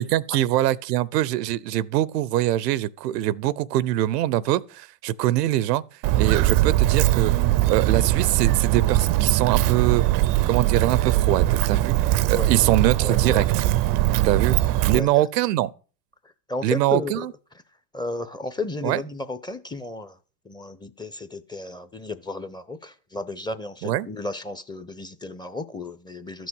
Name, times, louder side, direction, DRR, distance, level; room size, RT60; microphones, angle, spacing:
voice 1, 0.0-5.8 6.2-7.3 7.7-10.1 10.5-13.6 14.2-14.6 14.8-15.7 16.6-17.3 18.8-19.0 23.8-24.1, right 14 dB, 80° right, 0.7 m, -23 dB
Walk footsteps, 6.0-15.0, right 15 dB, 45° right, 0.6 m, -21 dB
voice 2, 13.0-13.4 14.1-14.3 14.9-15.2 16.5-17.3 17.9-20.2 20.4-26.5, left 3 dB, 10° left, 0.7 m, -33 dB
13.0 x 6.2 x 6.2 m
hypercardioid pair, 100°, 48 cm